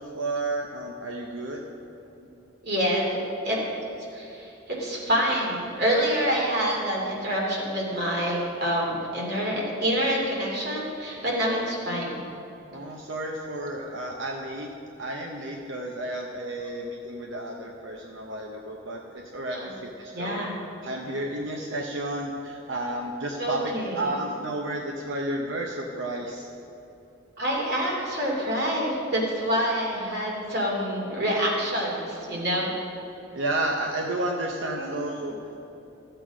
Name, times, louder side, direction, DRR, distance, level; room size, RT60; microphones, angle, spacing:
voice 1, 0.0-1.6 12.7-14.7 15.0-20.5 20.8-26.5 33.3-35.4, right 1 dB, 70° right, 1 dB, 0.8 m, -32 dB
voice 2, 2.6-3.6 4.1-12.2 19.5-19.7 20.1-20.5 23.4-24.2 27.4-32.7 34.8-34.9 35.2-35.3, equal, 55° right, -3 dB, 2.7 m, -27 dB
13.5 x 7.8 x 5.0 m, 2.9 s
head